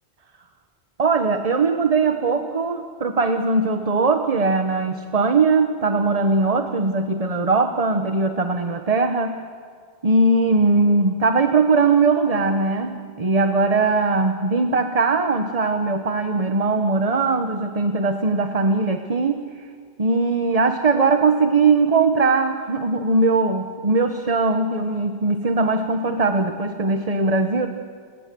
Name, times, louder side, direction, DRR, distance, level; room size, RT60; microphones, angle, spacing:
voice 1, 1.0-9.4 10.0-19.7 20.0-27.7, right 3 dB, 35° right, 6 dB, 1.2 m, -20 dB
30.0 x 29.0 x 6.9 m, 2.1 s
omnidirectional pair, 1.1 m